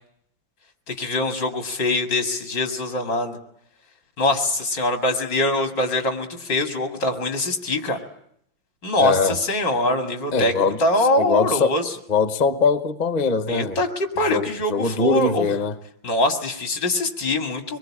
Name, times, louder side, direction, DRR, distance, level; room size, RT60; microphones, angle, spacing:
voice 1, 0.9-3.4 4.2-8.0 8.8-11.9 13.5-15.5 16.0-17.8, left 1 dB, 65° left, 4 dB, 3.0 m, -23 dB
voice 2, 9.0-9.4 10.3-10.8 11.2-11.8 12.1-13.8 14.3-15.8, left 5 dB, 35° left, 10 dB, 0.7 m, -22 dB
24.5 x 22.0 x 8.6 m, 0.74 s
omnidirectional pair, 2.1 m